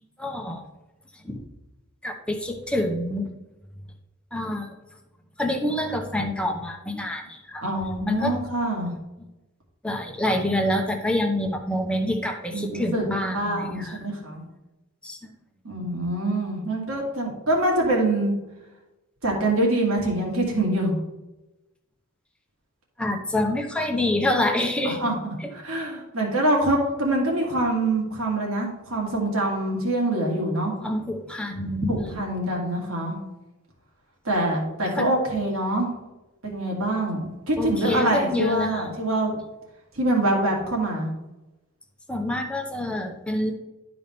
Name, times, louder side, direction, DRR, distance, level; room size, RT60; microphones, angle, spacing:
voice 1, 0.2-0.6 1.2-1.4 2.0-3.3 4.3-4.7 5.4-7.6 8.1-8.4 9.8-14.0 15.0-15.2 23.0-25.0 30.8-32.2 35.0-35.1 37.6-38.9 42.1-43.5, left 1 dB, 5° left, 3 dB, 0.8 m, -26 dB
voice 2, 7.6-9.0 12.5-13.0 13.3-14.4 15.6-18.4 19.2-20.9 24.8-30.7 31.9-33.2 34.2-35.9 36.4-39.4 39.9-41.1, right 1 dB, 75° right, -1 dB, 2.2 m, -25 dB
12.0 x 4.0 x 3.4 m, 1.0 s
head